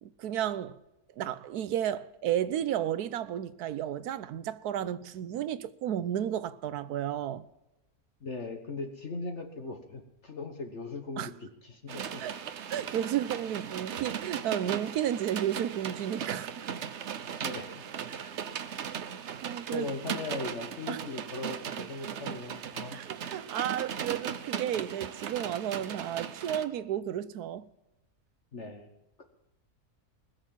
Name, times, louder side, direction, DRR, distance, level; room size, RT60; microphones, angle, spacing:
voice 1, 0.0-0.7 1.2-7.4 11.2-11.3 12.2-12.4 12.7-16.7 19.4-19.9 20.9-21.0 22.9-27.7, right 10 dB, 80° right, 1.3 m, -32 dB
voice 2, 8.2-11.3 11.6-12.4 17.4-18.3 19.5-23.0 23.6-23.8 28.5-28.9 29.2-29.3, left 3 dB, 50° left, 1.5 m, -39 dB
sound 1, 11.9-26.6, right 8 dB, 55° right, 1.0 m, -38 dB
20.0 x 6.8 x 7.4 m
omnidirectional pair, 1.6 m